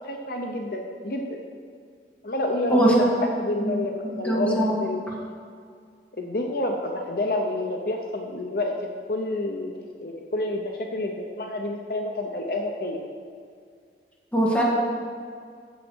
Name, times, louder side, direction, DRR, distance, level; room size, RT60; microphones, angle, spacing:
voice 1, 0.0-1.4 2.2-5.0 6.2-13.0, left 1 dB, 55° left, 2 dB, 0.8 m, -29 dB
voice 2, 2.7-3.2 3.6-3.8 4.2-4.8 14.3-14.6, right 1 dB, 10° left, -5 dB, 1.7 m, -21 dB
8.1 x 7.4 x 6.3 m, 2.2 s
head